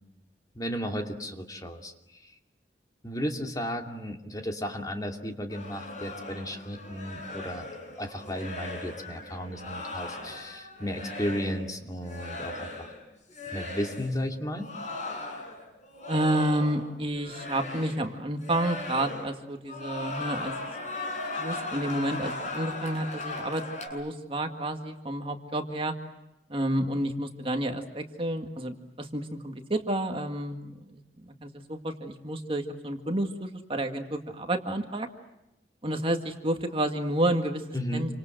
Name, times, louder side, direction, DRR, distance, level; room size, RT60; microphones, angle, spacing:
voice 1, 0.5-1.9 3.0-7.7 8.0-12.9 13.5-14.7 37.7-38.1, equal, 20° left, 3 dB, 2.6 m, -34 dB
sound 1, 5.5-11.7 12.0-13.0 13.3-14.1 14.5-16.9 17.1-18.1 18.4-19.4 19.6-23.9, left 2 dB, 45° left, 7.6 m, -38 dB
voice 2, 16.1-20.5 21.4-23.6 23.9-25.9 26.5-35.1 35.8-37.6 37.9-38.1, right 1 dB, 30° right, 5 dB, 1.9 m, -30 dB
28.5 x 26.0 x 7.8 m, 0.89 s
head